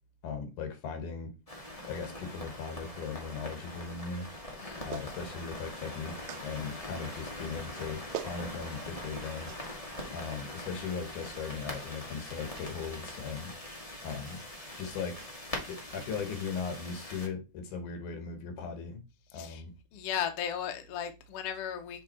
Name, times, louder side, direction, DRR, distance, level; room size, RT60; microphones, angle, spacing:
voice 1, 0.2-1.3 1.9-4.3 4.8-9.5 10.1-13.5 14.0-14.4 14.8-15.2 15.7-19.0 19.3-19.7, left 5 dB, 85° left, 2.8 m, -38 dB
sound 1, 1.5-17.3, left 1 dB, 25° left, 0.8 m, -42 dB
Clapping, 4.9-5.1 6.3-6.5 7.7-7.8 8.1-8.4 9.5-9.6, right 11 dB, 80° right, 2.0 m, -39 dB
voice 2, 19.9-22.0, left 9 dB, 65° left, 1.6 m, -36 dB
7.1 x 3.4 x 4.2 m
omnidirectional pair, 3.5 m